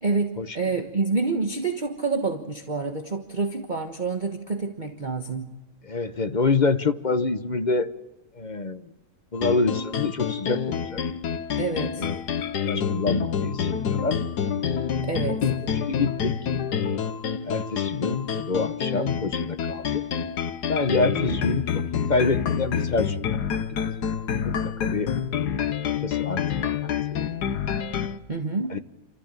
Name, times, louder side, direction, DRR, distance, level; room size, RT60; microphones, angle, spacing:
voice 1, 0.0-5.5 11.6-12.1 15.0-15.4 21.0-21.4 28.3-28.7, right 4 dB, 30° right, 4 dB, 1.4 m, -28 dB
voice 2, 5.8-7.9 8.4-8.9 9.3-11.0 12.0-12.1 12.6-14.2 15.4-16.4 17.4-20.0 20.7-21.6 21.9-23.4 23.7-24.1 24.4-25.1 26.0-26.4 26.8-26.9 27.2-27.3 28.7-28.8, left 3 dB, 35° left, 10 dB, 0.9 m, -26 dB
sound 1, 9.3-28.2, left 7 dB, 80° left, 1.6 m, -28 dB
28.5 x 14.0 x 9.0 m, 1.1 s
omnidirectional pair, 1.7 m